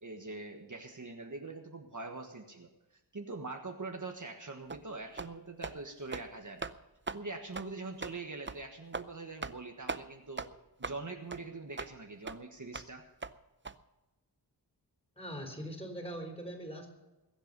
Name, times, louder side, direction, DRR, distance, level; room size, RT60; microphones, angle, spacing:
voice 1, 0.0-6.7 7.1-10.5 10.8-13.0, right 3 dB, 45° right, 3 dB, 1.5 m, -43 dB
sound 1, 4.7-4.8 5.2-5.3 5.6-5.8 6.1-6.3 6.6-6.7 7.1-7.2 7.5-7.7 8.0-8.1 8.5-8.6 8.9-9.1 9.4-9.6 9.9-10.0 10.4-10.5 10.8-11.0 11.3-11.4 11.8-11.9 12.3-12.4 12.7-12.9 13.2-13.3 13.6-13.7, right 4 dB, 25° right, 0.6 m, -39 dB
voice 2, 15.2-16.9, equal, 15° left, 2 dB, 4.2 m, -42 dB
21.5 x 8.1 x 5.5 m, 1.0 s
wide cardioid pair, 70°, 43 cm